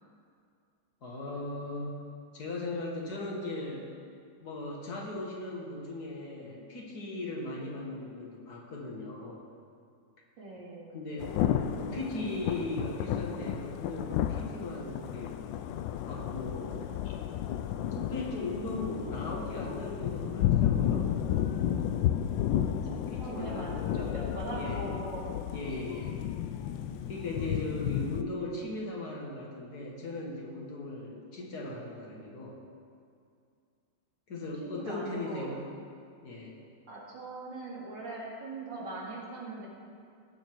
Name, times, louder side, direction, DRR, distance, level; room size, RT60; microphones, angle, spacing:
voice 1, 1.0-3.9 4.4-9.4 10.9-11.4 11.8-15.4 16.1-17.1 17.9-21.1 23.1-24.9 25.5-26.1 27.1-32.6 34.3-35.7 36.2-36.6, left 2 dB, 60° left, -3 dB, 2.2 m, -38 dB
voice 2, 10.4-11.0 22.8-25.3 34.6-35.5 36.9-39.7, right 2 dB, 80° right, -5 dB, 3.1 m, -41 dB
Thunder / Rain, 11.2-28.2, left 10 dB, 90° left, 1.3 m, -32 dB
17.0 x 6.9 x 4.7 m, 2.4 s
omnidirectional pair, 2.0 m